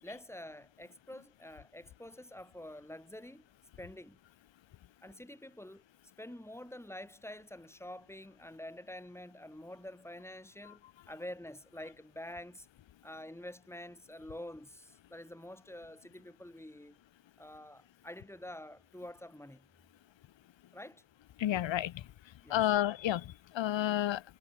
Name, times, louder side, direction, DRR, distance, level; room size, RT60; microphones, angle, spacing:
voice 1, 0.0-3.5 3.8-4.2 5.0-5.8 6.2-12.7 13.0-17.0 17.4-19.7 20.7-21.0 22.4-22.8, left 1 dB, 5° left, 7.0 m, -47 dB
voice 2, 21.4-22.0 22.5-24.2, left 12 dB, 65° left, 0.7 m, -30 dB
wide cardioid pair, 160°, 47 cm